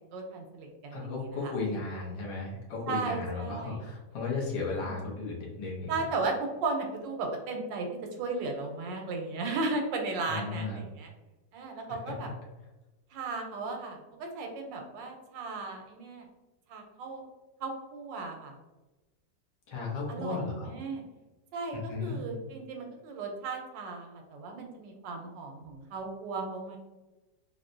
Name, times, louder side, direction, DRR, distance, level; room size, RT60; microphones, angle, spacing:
voice 1, 0.1-1.5 2.9-3.9 4.8-5.2 5.9-7.9 8.2-11.1 11.5-12.3 13.1-16.3 16.7-17.2 17.6-18.5 20.1-21.0 21.5-26.8, right 3 dB, 90° right, 3 dB, 1.3 m, -36 dB
voice 2, 0.9-5.9 10.2-10.8 12.1-12.2 19.7-20.7 21.7-22.2, left 3 dB, 80° left, -3 dB, 1.6 m, -35 dB
4.1 x 2.2 x 2.5 m, 1.1 s
omnidirectional pair, 1.9 m